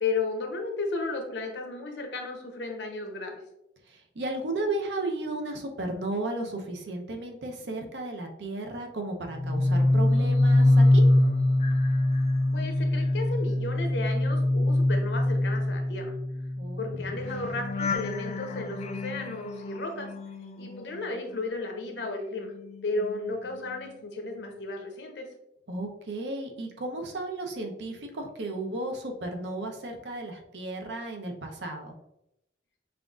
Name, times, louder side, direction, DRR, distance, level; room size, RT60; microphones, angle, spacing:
voice 1, 0.0-3.4 12.5-16.1 16.8-20.1 20.6-22.5 22.8-25.3, left 3 dB, 75° left, 4 dB, 0.8 m, -34 dB
voice 2, 3.9-11.0 16.6-17.1 25.7-31.9, right 2 dB, 80° right, 3 dB, 0.7 m, -34 dB
sound 1, 9.3-21.5 21.8-23.9 24.2-24.6, left 1 dB, 40° left, 0.4 m, -25 dB
5.7 x 2.5 x 2.4 m, 0.82 s
head